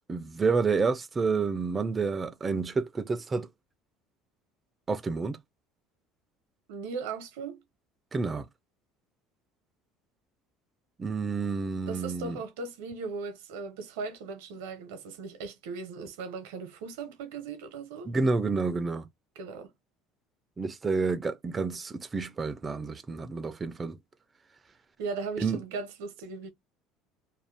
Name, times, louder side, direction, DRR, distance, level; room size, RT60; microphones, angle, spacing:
voice 1, 0.1-3.5 4.9-5.4 8.1-8.5 11.0-12.4 18.1-19.1 20.6-24.0 25.4-25.6, right 4 dB, 25° right, 0.4 m, -29 dB
voice 2, 6.7-7.6 11.9-18.1 19.4-19.7 25.0-26.5, right 4 dB, 90° right, 0.7 m, -38 dB
2.5 x 2.1 x 3.2 m
supercardioid pair, 105°, 0 cm